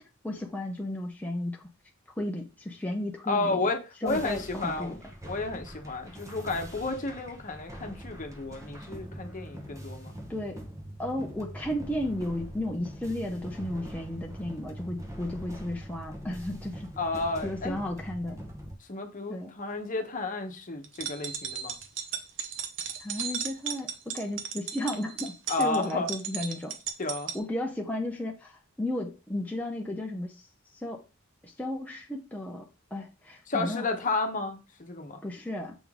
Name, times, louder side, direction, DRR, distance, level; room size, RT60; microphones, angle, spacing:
voice 1, 0.2-1.7 2.2-3.7 4.0-5.0 10.3-10.6 11.0-16.9 17.4-18.4 19.3-19.5 23.0-26.7 27.3-30.5 30.8-31.0 31.4-32.6 32.9-33.9 35.2-35.8, left 1 dB, 10° left, 0.6 m, -34 dB
voice 2, 3.3-5.0 5.2-10.1 17.0-17.8 18.9-21.8 25.5-26.1 27.0-27.3 33.5-35.2, left 3 dB, 40° left, 1.0 m, -32 dB
sound 1, 4.1-18.8, equal, 15° right, 1.0 m, -43 dB
sound 2, 20.8-27.4, right 8 dB, 65° right, 0.9 m, -36 dB
7.0 x 3.7 x 3.6 m
head